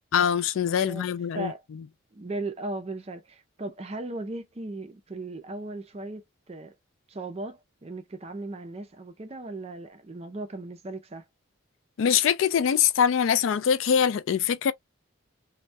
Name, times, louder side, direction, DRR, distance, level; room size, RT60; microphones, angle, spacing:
voice 1, 0.1-1.5 12.0-14.7, left 8 dB, 70° left, 0.3 m, -23 dB
voice 2, 2.1-6.7 7.1-11.2, right 2 dB, 30° right, 0.4 m, -37 dB
2.2 x 2.1 x 2.6 m
head